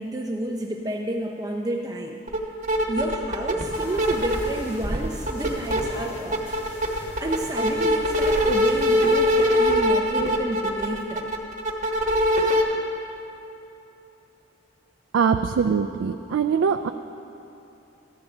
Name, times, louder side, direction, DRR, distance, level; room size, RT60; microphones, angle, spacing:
voice 1, 0.0-2.2 2.9-6.6 7.2-11.4, right 1 dB, 20° right, 1 dB, 0.5 m, -30 dB
sound 1, 2.3-2.4 2.6-4.5 4.8-5.8 6.2-12.6, equal, 40° right, 1.1 m, -22 dB
sound 2, 3.6-9.5, left 1 dB, 45° left, 2.3 m, -42 dB
voice 2, 15.1-16.9, right 6 dB, 85° right, 7 dB, 0.3 m, -22 dB
14.5 x 10.5 x 3.8 m, 2.9 s
head